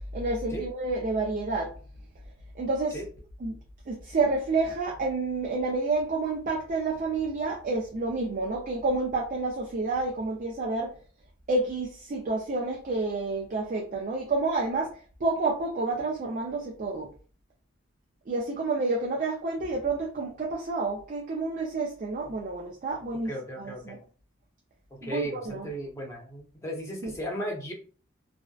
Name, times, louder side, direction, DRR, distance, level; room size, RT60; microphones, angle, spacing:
voice 1, 0.1-1.7 2.6-3.0 3.4-3.6 3.9-10.9 11.5-14.9 15.2-17.1 18.3-23.3 23.6-24.0 25.0-25.7 27.0-27.1, right 3 dB, 40° right, -1 dB, 0.4 m, -29 dB
voice 2, 23.2-24.0 25.0-27.7, right 1 dB, 15° left, -1 dB, 0.7 m, -35 dB
2.7 x 2.1 x 2.3 m, 0.39 s
head